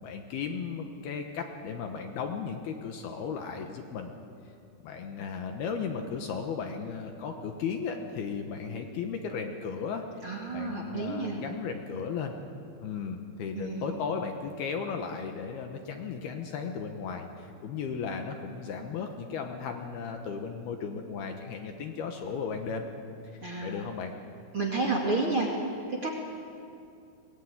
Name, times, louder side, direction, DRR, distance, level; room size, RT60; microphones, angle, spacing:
voice 1, 0.0-4.1 4.8-12.3 12.8-22.9 23.3-24.1, left 6 dB, 70° left, 4 dB, 2.8 m, -35 dB
voice 2, 10.2-11.4 13.5-14.0 23.4-23.8 24.5-25.5 25.9-26.1, right 3 dB, 40° right, -1 dB, 2.3 m, -30 dB
22.5 x 19.0 x 9.6 m, 2.5 s
omnidirectional pair, 5.4 m